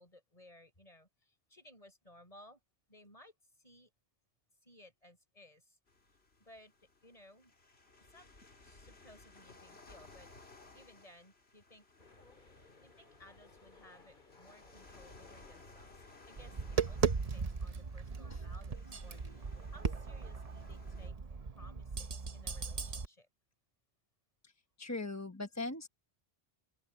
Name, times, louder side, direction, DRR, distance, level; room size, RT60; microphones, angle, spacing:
voice 1, 0.0-2.6 2.9-3.9 4.6-5.8 6.4-6.7 7.0-7.5 8.0-8.3 8.6-11.9 12.8-16.0 16.3-21.2 21.6-23.3, left 1 dB, 35° left, 6.3 m, -60 dB
sound 1, 5.9-21.1, left 3 dB, 90° left, 3.0 m, -60 dB
sound 2, 12.0-17.2, left 3 dB, 55° left, 2.3 m, -62 dB
Tap, 16.4-23.1, right 5 dB, 40° right, 0.9 m, -37 dB
voice 2, 24.8-25.9, left 2 dB, 15° left, 1.1 m, -40 dB
open air
omnidirectional pair, 1.0 m